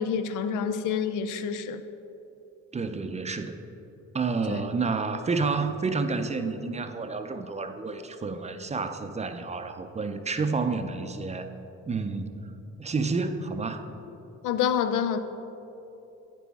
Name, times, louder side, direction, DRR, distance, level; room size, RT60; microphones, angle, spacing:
voice 1, 0.0-1.8 4.5-4.6 14.4-15.2, left 7 dB, 85° left, 10 dB, 0.5 m, -27 dB
voice 2, 2.7-3.6 4.1-11.5 11.9-12.5 12.8-13.9, right 4 dB, 25° right, 8 dB, 0.4 m, -30 dB
9.0 x 7.4 x 3.5 m, 3.0 s
cardioid pair, 90°, 30 cm